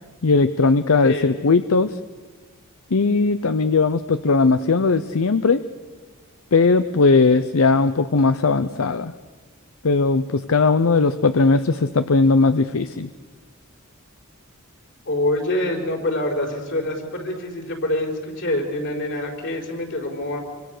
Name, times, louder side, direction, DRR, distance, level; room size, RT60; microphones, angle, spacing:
voice 1, 0.2-2.0 2.9-5.6 6.5-9.1 9.8-13.1, left 4 dB, 85° left, 12 dB, 0.7 m, -18 dB
voice 2, 15.0-20.4, left 1 dB, 60° left, 1 dB, 4.8 m, -25 dB
27.0 x 25.0 x 6.7 m, 1.4 s
head